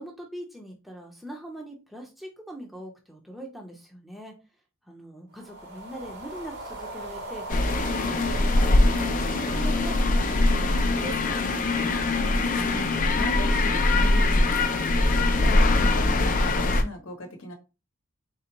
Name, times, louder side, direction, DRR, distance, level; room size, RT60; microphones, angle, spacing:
voice 1, 0.0-4.3 4.9-7.4 7.8-11.7, right 1 dB, ahead, 0 dB, 0.7 m, -42 dB
sound 1, 5.3-14.8, right 1 dB, 50° right, 1.1 m, -40 dB
sound 2, 7.5-16.8, left 2 dB, 35° left, 0.5 m, -22 dB
voice 2, 11.8-17.5, left 2 dB, 65° left, 2 dB, 0.9 m, -39 dB
3.8 x 2.1 x 4.4 m, 0.29 s
head